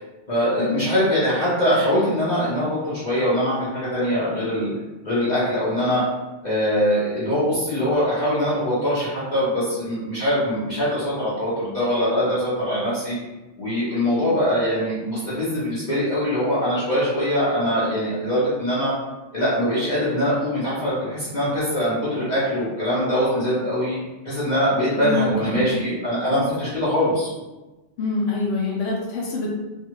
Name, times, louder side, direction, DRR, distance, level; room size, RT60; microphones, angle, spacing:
voice 1, 0.3-4.7 5.0-6.0 6.4-13.2 13.6-18.9 19.3-24.0 24.2-27.3, equal, 40° left, -11 dB, 1.0 m, -22 dB
voice 2, 25.0-25.8 28.0-29.5, left 3 dB, 85° left, -3 dB, 0.9 m, -25 dB
2.5 x 2.4 x 2.9 m, 1.1 s
omnidirectional pair, 1.2 m